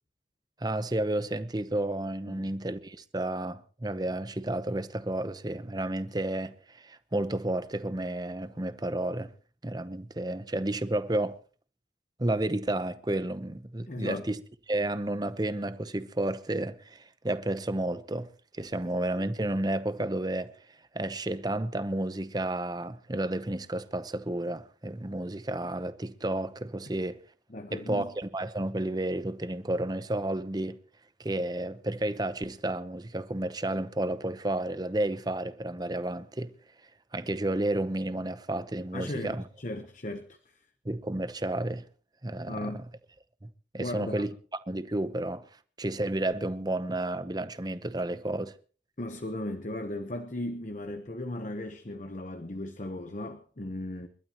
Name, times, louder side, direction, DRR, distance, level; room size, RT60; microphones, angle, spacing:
voice 1, 0.6-9.3 9.6-11.4 12.2-14.4 14.7-18.3 18.5-20.5 20.9-27.2 27.7-30.8 31.2-36.5 37.1-39.4 40.8-41.8 42.2-42.7 43.4-43.5 43.7-44.3 44.7-45.5 45.8-48.5, right 1 dB, 20° right, 0.8 m, -31 dB
voice 2, 13.9-14.2 27.5-28.1 38.9-40.4 42.4-42.8 43.8-44.3 49.0-54.1, left 1 dB, 45° left, 1.0 m, -36 dB
29.5 x 12.5 x 3.0 m
head